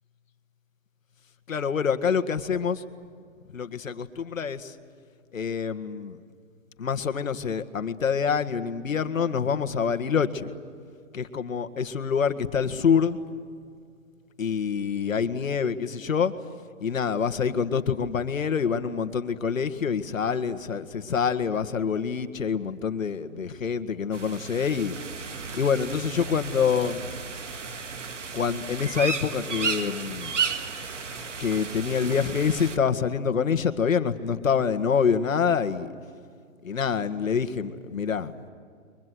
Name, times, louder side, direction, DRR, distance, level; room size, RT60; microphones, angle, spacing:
voice 1, 1.5-2.8 3.5-4.7 5.3-6.2 6.8-10.5 11.1-13.2 14.4-16.3 16.8-24.9 25.5-27.0 28.3-30.3 31.4-35.9 36.6-38.3, left 6 dB, 70° left, 10 dB, 1.8 m, -26 dB
sound 1, 24.1-32.8, right 5 dB, 60° right, 1.9 m, -34 dB
29.5 x 23.5 x 7.8 m, 2.2 s
hypercardioid pair, 180°, 41 cm